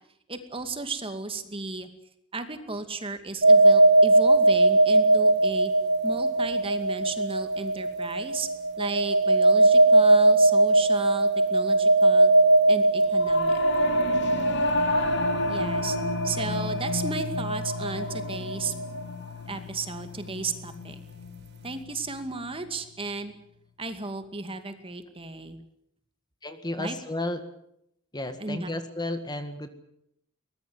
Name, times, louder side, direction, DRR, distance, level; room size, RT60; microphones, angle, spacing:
voice 1, 0.3-1.9 2.3-5.7 6.0-8.5 8.8-12.3 12.7-13.6 15.5-16.0 16.2-18.7 19.5-21.0 21.6-23.3 23.8-25.6 26.8-27.0 28.4-28.7, right 3 dB, 25° right, 8 dB, 2.3 m, -34 dB
sound 1, 3.4-19.0, right 2 dB, 55° right, 1.2 m, -21 dB
Singing / Musical instrument, 13.1-22.7, left 3 dB, 55° left, 2.7 m, -32 dB
voice 2, 26.4-27.4 28.1-29.7, left 1 dB, 20° left, 9 dB, 1.8 m, -32 dB
23.0 x 20.0 x 8.1 m, 0.74 s
head